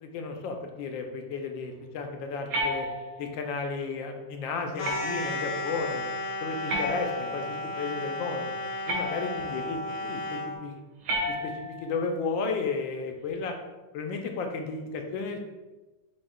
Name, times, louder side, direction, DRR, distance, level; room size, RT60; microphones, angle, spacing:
voice 1, 0.0-2.9 3.2-6.0 6.4-8.5 8.9-10.8 11.3-13.5 13.9-15.4, left 4 dB, 80° left, 4 dB, 1.3 m, -33 dB
sound 1, 2.5-3.4 4.8-5.4 6.7-7.6 8.9-9.6 11.0-11.9, equal, 65° right, 0.9 m, -32 dB
sound 2, 4.8-10.6, left 2 dB, 65° left, 1.0 m, -34 dB
7.2 x 2.8 x 2.3 m, 1.2 s
omnidirectional pair, 2.1 m